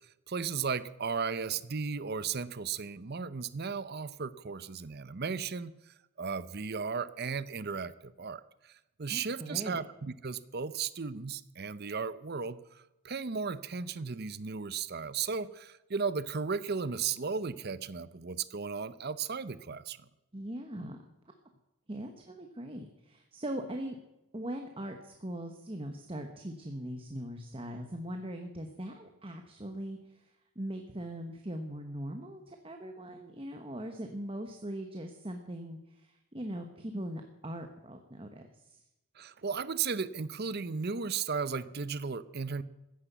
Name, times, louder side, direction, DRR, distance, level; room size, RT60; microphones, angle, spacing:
voice 1, 0.3-20.0 39.2-42.6, right 5 dB, 45° right, 16 dB, 0.6 m, -35 dB
voice 2, 9.1-9.8 20.3-21.0 21.9-24.0 24.3-38.8, right 1 dB, 25° right, 5 dB, 1.1 m, -40 dB
15.0 x 10.0 x 8.2 m, 0.93 s
head